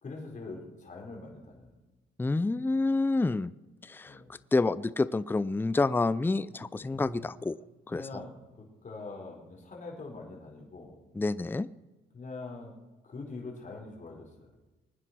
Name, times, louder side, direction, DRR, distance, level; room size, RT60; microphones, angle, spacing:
voice 1, 0.0-1.8 4.0-4.3 6.8-7.0 7.9-11.0 12.1-12.7 13.0-14.5, left 3 dB, 40° left, -1 dB, 4.7 m, -43 dB
voice 2, 2.2-3.5 3.8-4.2 4.5-7.6 7.9-8.2 11.1-11.7, left 3 dB, 10° left, 17 dB, 0.5 m, -28 dB
Drum, 6.9-9.3, equal, 55° right, 7.3 m, -54 dB
22.5 x 9.9 x 6.1 m, 1.1 s
cardioid pair, 90°, 20 cm